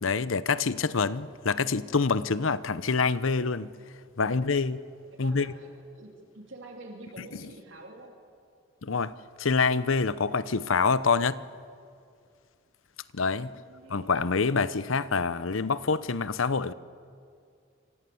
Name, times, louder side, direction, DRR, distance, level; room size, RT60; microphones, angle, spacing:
voice 1, 0.0-3.7 4.2-4.8 5.2-5.5 8.8-9.1 9.4-11.4 13.1-13.5 13.9-16.7, left 4 dB, 85° left, 0.8 m, -26 dB
voice 2, 5.1-8.2 13.3-14.3, right 2 dB, 75° right, 3.3 m, -48 dB
28.5 x 26.0 x 7.1 m
head